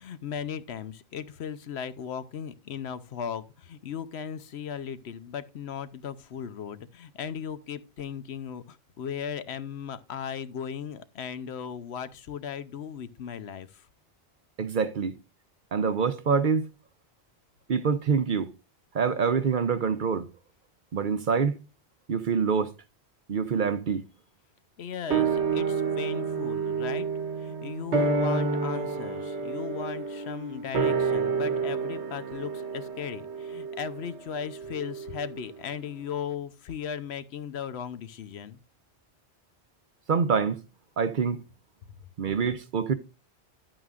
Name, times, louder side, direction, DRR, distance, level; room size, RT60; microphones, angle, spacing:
voice 1, 0.0-13.7 24.8-27.1 27.4-38.6, left 7 dB, 75° left, 1.0 m, -37 dB
voice 2, 14.6-15.1 15.7-16.7 17.7-18.5 18.9-20.3 20.9-21.6 22.1-22.7 23.3-24.0 40.1-40.6 41.0-41.4 42.2-42.9, right 6 dB, 55° right, 0.7 m, -25 dB
sound 1, 25.1-35.7 36.0-36.1, right 4 dB, 80° right, 1.4 m, -29 dB
11.0 x 8.9 x 2.4 m
omnidirectional pair, 1.1 m